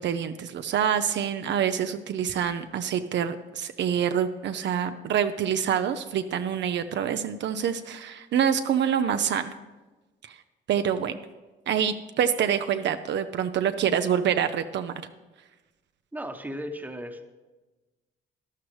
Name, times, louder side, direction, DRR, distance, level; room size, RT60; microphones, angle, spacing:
voice 1, 0.0-9.5 10.7-11.2 11.7-14.9, right 8 dB, 65° right, 9 dB, 0.6 m, -26 dB
voice 2, 16.1-17.3, equal, 10° right, 7 dB, 1.0 m, -36 dB
12.5 x 11.5 x 3.2 m, 1.2 s
cardioid pair, 90°, 20 cm